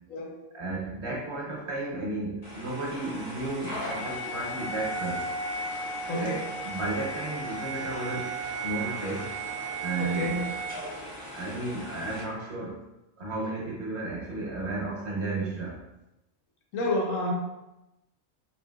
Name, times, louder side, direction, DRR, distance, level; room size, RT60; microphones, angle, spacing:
voice 1, 0.5-5.3 6.0-8.4 8.6-9.4 9.8-10.5 11.3-12.8 13.2-15.8, right 2 dB, 60° right, -2 dB, 0.9 m, -33 dB
sound 1, 2.4-12.2, right 2 dB, 55° left, 1.3 m, -35 dB
voice 2, 6.1-6.5 10.0-10.4 16.7-17.3, left 1 dB, 80° left, -1 dB, 1.1 m, -29 dB
3.1 x 2.7 x 2.2 m, 0.95 s
omnidirectional pair, 1.3 m